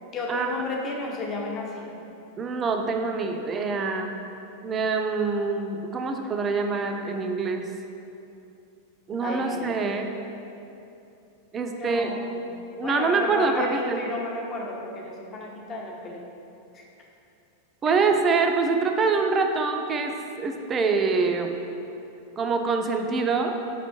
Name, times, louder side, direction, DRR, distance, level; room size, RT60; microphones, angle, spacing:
voice 1, 0.1-1.9 9.2-9.8 11.7-16.2 16.7-16.9 17.8-18.1, left 2 dB, 30° left, -1 dB, 0.6 m, -33 dB
voice 2, 2.4-4.1 4.6-7.7 9.1-10.1 11.5-12.4 12.8-14.0 17.8-21.5 22.4-23.6, right 4 dB, 25° right, 4 dB, 0.3 m, -25 dB
5.2 x 3.0 x 3.0 m, 2.8 s
figure-of-eight pair, 90°, 0 cm